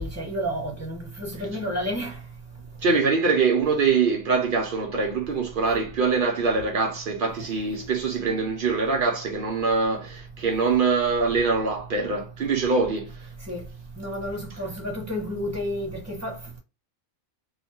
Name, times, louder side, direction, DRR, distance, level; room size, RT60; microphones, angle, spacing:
voice 1, 0.0-2.2 13.5-13.6 14.0-16.6, equal, 15° right, 1.2 m, -31 dB
voice 2, 2.8-13.3, right 4 dB, 60° right, 0.6 m, -24 dB
2.8 x 2.1 x 2.8 m
omnidirectional pair, 1.3 m